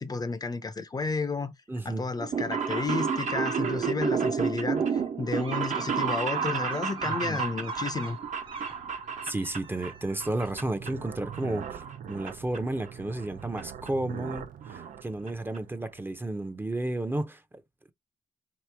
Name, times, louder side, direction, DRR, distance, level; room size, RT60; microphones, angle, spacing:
voice 1, 0.0-1.5 1.8-8.2, left 4 dB, 30° left, 0.6 m, -32 dB
voice 2, 1.7-2.1 7.0-7.4 9.2-11.8 12.1-17.4, right 2 dB, 15° right, 0.7 m, -32 dB
sound 1, 2.2-9.9 10.2-10.9 11.2-12.3 12.5-12.6 13.6-13.7 13.9-14.0 14.2-14.3 14.6-14.9 15.3-15.4 15.5-15.6, right 6 dB, 60° right, 1.2 m, -30 dB
sound 2, 5.4-8.8 9.2-10.5, right 7 dB, 40° right, 1.2 m, -46 dB
sound 3, 6.9-16.5, right 8 dB, 80° right, 0.7 m, -44 dB
4.1 x 3.0 x 3.4 m
cardioid pair, 120°, 14 cm